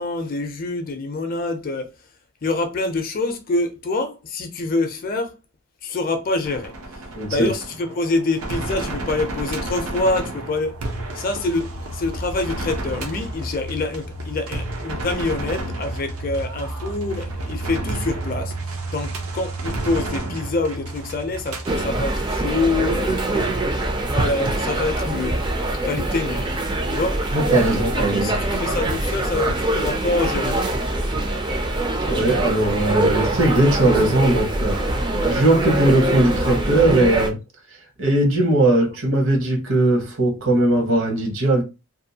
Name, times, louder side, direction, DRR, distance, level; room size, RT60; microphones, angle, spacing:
voice 1, 0.0-1.9 2.4-5.3 5.8-6.7 7.3-10.7 11.1-23.9 24.1-25.3 25.8-26.5 26.9-27.2 28.1-30.6, left 2 dB, 40° left, 0.5 m, -26 dB
sound 1, 6.4-21.8, right 2 dB, 90° right, 0.6 m, -31 dB
voice 2, 7.1-7.5 27.3-28.4 32.0-34.8 35.3-37.4 38.0-41.6, right 1 dB, 65° right, 0.9 m, -19 dB
sound 2, 21.6-37.3, right 2 dB, 20° right, 0.4 m, -23 dB
2.6 x 2.3 x 2.7 m
head